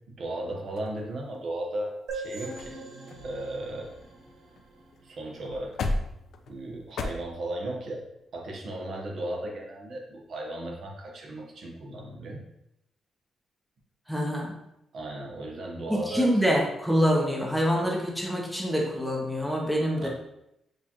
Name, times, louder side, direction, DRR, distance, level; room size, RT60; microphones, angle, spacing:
voice 1, 0.1-2.8 3.2-3.9 5.0-5.8 6.5-8.0 8.3-12.5 14.9-16.4 20.0-20.1, right 1 dB, 60° right, 0 dB, 1.0 m, -35 dB
sound 1, 0.8-1.6 2.2-2.3 2.5-2.8 3.1-4.6 4.9-5.0 5.4-7.1, left 2 dB, 70° left, 0.4 m, -35 dB
sound 2, 2.1-5.6, right 3 dB, 85° right, 1.1 m, -42 dB
voice 2, 14.1-14.6 15.9-20.1, equal, ahead, -2 dB, 0.8 m, -26 dB
6.5 x 2.4 x 2.9 m, 0.83 s
cardioid pair, 125°, 0 cm